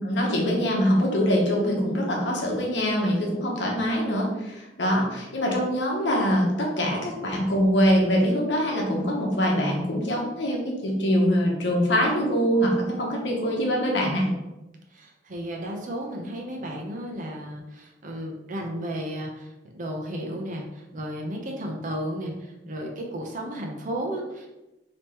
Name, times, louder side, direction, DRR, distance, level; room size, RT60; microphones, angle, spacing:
voice 1, 0.0-14.3, equal, 80° left, -2 dB, 0.9 m, -24 dB
voice 2, 14.9-24.5, equal, 45° right, 1 dB, 0.6 m, -33 dB
3.4 x 2.9 x 3.0 m, 1.0 s
head